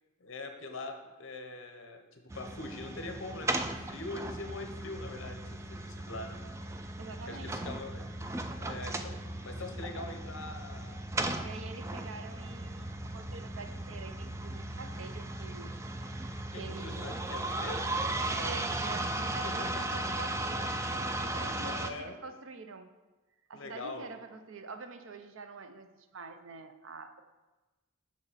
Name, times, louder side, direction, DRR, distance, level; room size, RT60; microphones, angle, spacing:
voice 1, 0.2-6.4 7.3-8.1 8.5-11.1 16.5-17.9 19.4-19.8 21.6-22.2 23.5-24.1, left 2 dB, 60° left, 5 dB, 0.9 m, -43 dB
sound 1, 2.3-21.9, right 2 dB, 15° right, 0.3 m, -36 dB
voice 2, 7.0-7.5 11.4-17.1 18.2-22.9 23.5-27.2, right 4 dB, 60° right, 8 dB, 0.6 m, -46 dB
6.9 x 6.3 x 4.1 m, 1.2 s
head